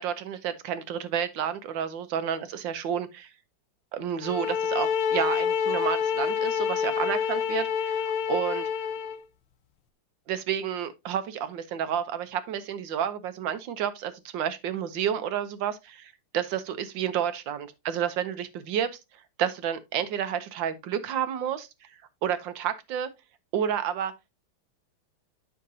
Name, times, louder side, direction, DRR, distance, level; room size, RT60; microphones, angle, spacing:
voice 1, 0.0-3.3 3.9-8.7 10.3-19.0 19.4-21.7 22.2-23.1 23.5-24.1, right 9 dB, 70° right, 1.4 m, -30 dB
sound 1, 4.2-9.2, left 7 dB, 90° left, 1.7 m, -27 dB
9.2 x 5.8 x 2.7 m
omnidirectional pair, 2.3 m